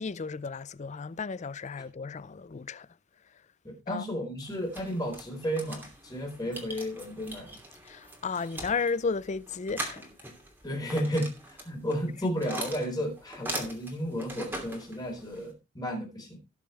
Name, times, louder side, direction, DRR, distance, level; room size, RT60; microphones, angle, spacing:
voice 1, 0.0-2.9 3.9-4.0 7.9-10.1, left 5 dB, 35° left, 0.4 m, -33 dB
voice 2, 3.6-7.6 10.6-16.4, equal, 20° left, 4.2 m, -33 dB
sound 1, 4.4-15.5, right 1 dB, 10° right, 2.8 m, -42 dB
17.5 x 6.8 x 3.3 m
head